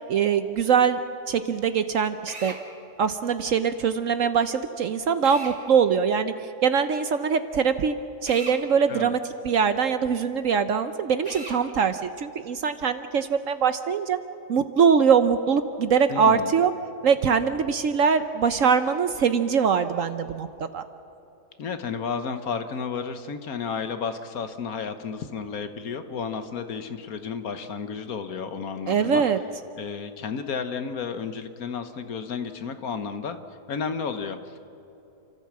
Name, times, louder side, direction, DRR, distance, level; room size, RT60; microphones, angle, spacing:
voice 1, 0.1-1.0 1.3-2.6 3.0-7.9 8.2-9.2 9.4-14.2 14.5-16.7 17.0-20.5 20.7-20.8 28.9-29.4, right 6 dB, 60° right, 10 dB, 1.0 m, -22 dB
Drill, 2.3-2.6 5.2-5.6 8.2-8.6 11.2-11.6, right 1 dB, 25° right, 2.6 m, -37 dB
voice 2, 16.1-16.5 21.6-29.3 29.8-33.4 33.7-34.6, left 6 dB, 60° left, 9 dB, 1.5 m, -32 dB
30.0 x 14.0 x 7.5 m, 3.0 s
omnidirectional pair, 1.8 m